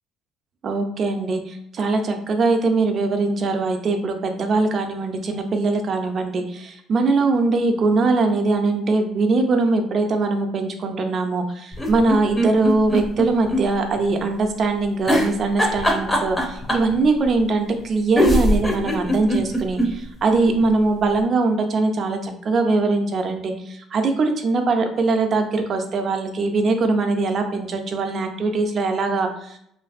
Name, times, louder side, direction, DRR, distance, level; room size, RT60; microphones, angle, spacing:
voice 1, 0.6-29.6, right 3 dB, 45° right, 5 dB, 0.4 m, -21 dB
sound 1, 11.7-13.6 14.0-14.1 15.1-16.9 17.8-17.9 18.2-19.9 20.3-20.4 20.6-20.7, equal, 10° left, 0.6 m, -20 dB
2.5 x 2.5 x 2.4 m, 0.75 s
cardioid pair, 95°, 0 cm